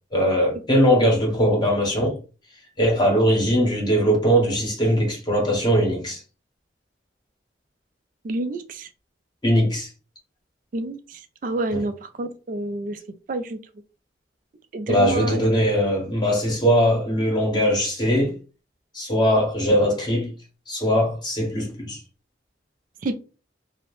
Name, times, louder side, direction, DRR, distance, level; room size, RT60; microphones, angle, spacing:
voice 1, 0.1-2.2 2.8-6.2 9.4-9.9 11.7-11.8 14.9-18.4 18.9-20.3 20.7-22.0, equal, 25° left, 0.9 m, -20 dB
voice 2, 8.2-8.9 10.7-13.0 13.3-13.6 14.7-15.6 23.0-23.1, right 2 dB, 50° right, 0.4 m, -29 dB
2.8 x 2.0 x 3.0 m
head